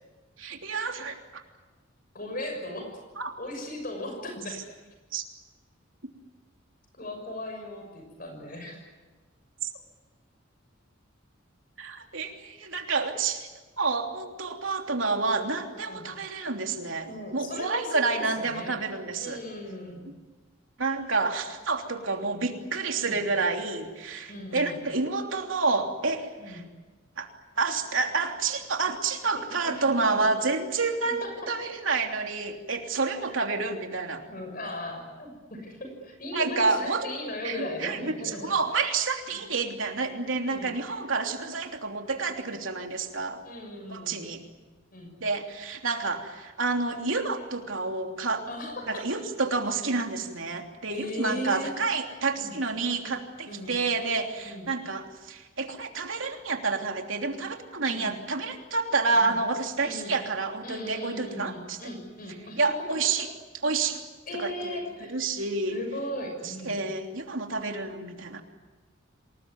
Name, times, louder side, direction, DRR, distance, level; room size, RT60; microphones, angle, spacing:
voice 1, 0.4-1.2 3.2-3.3 5.1-5.2 11.8-13.5 13.8-19.4 20.8-26.6 27.2-27.3 27.6-34.2 36.3-37.0 37.4-38.1 38.4-43.4 43.9-44.4 45.2-48.4 48.9-61.8 62.6-63.3 63.6-64.0 64.4-64.8 65.1-65.8 66.7-68.4, right 4 dB, 80° right, 3 dB, 3.2 m, -29 dB
voice 2, 2.1-3.0 3.4-4.7 6.9-8.8 15.9-16.1 17.1-18.8 19.2-20.1 23.0-23.2 24.3-24.8 26.4-26.7 29.3-30.2 31.0-31.5 34.3-38.5 39.3-39.4 40.5-40.7 43.4-44.4 44.9-45.1 48.5-49.0 50.9-51.7 52.4-52.6 53.5-53.8 54.4-54.8 57.9-58.2 59.1-59.4 59.8-60.2 60.6-63.1 64.3-65.2 65.7-66.8, left 1 dB, 45° left, 4 dB, 6.4 m, -37 dB
27.5 x 20.0 x 9.5 m, 1.2 s
head